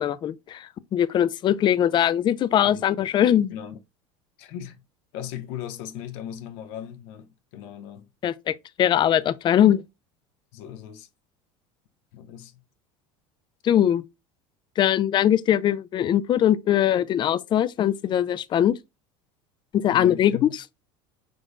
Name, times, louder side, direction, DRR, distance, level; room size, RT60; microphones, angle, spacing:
voice 1, 0.0-3.5 8.2-9.8 13.6-14.0 14.8-18.8 19.7-20.6, left 10 dB, 35° left, 0.4 m, -21 dB
voice 2, 2.6-3.1 3.5-3.8 4.4-4.8 5.1-8.1 10.5-11.1 12.1-12.5 19.9-20.5, left 10 dB, 70° left, 0.8 m, -38 dB
5.0 x 3.7 x 2.2 m
supercardioid pair, 105°, 14 cm